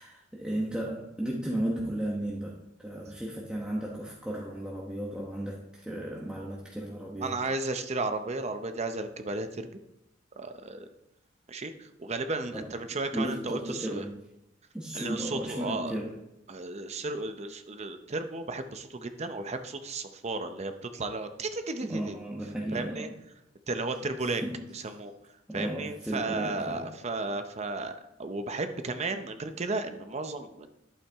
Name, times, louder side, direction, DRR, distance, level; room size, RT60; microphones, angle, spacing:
voice 1, 0.0-7.4 12.5-12.7 13.1-14.2 14.7-16.2 21.8-23.1 24.4-24.6 25.5-26.9, right 1 dB, 5° right, -4 dB, 1.0 m, -34 dB
voice 2, 7.2-9.7 10.4-10.9 11.5-14.0 14.9-15.9 16.5-22.2 22.7-23.1 23.7-24.4 24.7-25.1 25.5-30.7, right 3 dB, 35° right, 8 dB, 0.6 m, -34 dB
11.5 x 8.5 x 3.5 m, 0.86 s
head